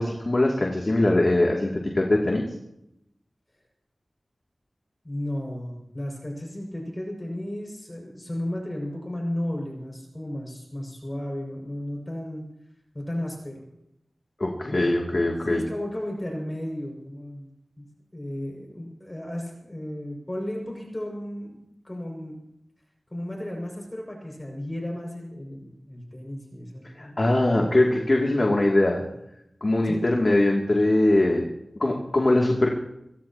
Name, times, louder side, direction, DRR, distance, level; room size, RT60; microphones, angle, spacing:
voice 1, 0.0-2.4 14.4-15.6 26.9-29.0 29.6-31.5 31.8-32.7, left 1 dB, 50° left, -1 dB, 2.7 m, -22 dB
voice 2, 5.0-12.4 12.9-13.6 15.5-17.5 17.8-22.4 23.1-27.2 29.8-30.1, left 1 dB, 25° left, 0 dB, 6.3 m, -34 dB
27.5 x 16.5 x 3.0 m, 0.81 s
wide cardioid pair, 50°, 0 cm